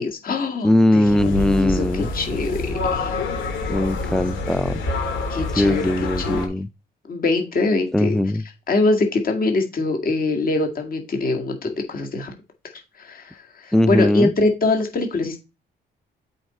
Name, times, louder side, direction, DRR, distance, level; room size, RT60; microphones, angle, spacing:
voice 1, 0.0-3.1 5.3-5.8 6.3-6.4 7.1-8.2 8.7-12.3 13.0-15.4, left 3 dB, 45° left, 2.0 m, -23 dB
voice 2, 0.6-2.1 3.7-4.8 5.5-6.7 7.9-8.4 13.7-14.3, left 1 dB, 5° left, 0.4 m, -20 dB
sound 1, 1.1-6.5, left 3 dB, 75° left, 2.6 m, -27 dB
8.0 x 4.4 x 4.2 m
cardioid pair, 90°, 20 cm